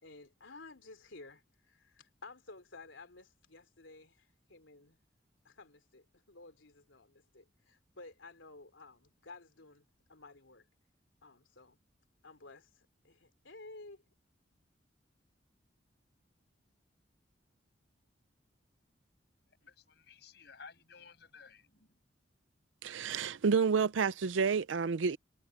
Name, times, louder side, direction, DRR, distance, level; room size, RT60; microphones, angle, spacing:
voice 1, 0.0-5.0 5.4-10.7 11.2-11.8 12.2-14.0, left 3 dB, 85° left, 3.4 m, -54 dB
voice 2, 19.6-22.0, left 5 dB, 60° left, 7.3 m, -55 dB
voice 3, 22.8-25.2, right 5 dB, 85° right, 0.5 m, -29 dB
head